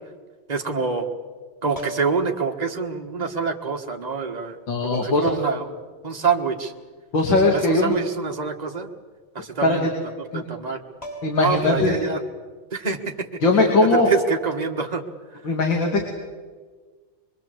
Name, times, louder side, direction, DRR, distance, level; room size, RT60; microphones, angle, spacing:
voice 1, 0.5-1.1 1.6-5.7 6.0-6.7 7.5-8.9 9.3-9.9 10.2-10.8 11.4-12.2 12.7-13.3 13.8-15.0, right 5 dB, 20° right, 3 dB, 1.5 m, -26 dB
sound 1, 1.7-2.3 3.6-3.7 4.9-5.4 7.9-8.3 8.7-8.8 10.6-10.7 11.0-11.6 13.6-13.8, right 1 dB, 15° left, 5.9 m, -38 dB
voice 2, 4.7-5.3 7.1-8.0 9.6-9.8 10.3-10.4 11.2-12.0 13.4-14.1 15.4-16.0, left 3 dB, 60° left, 2 dB, 3.2 m, -19 dB
24.0 x 23.5 x 8.0 m, 1.5 s
omnidirectional pair, 2.4 m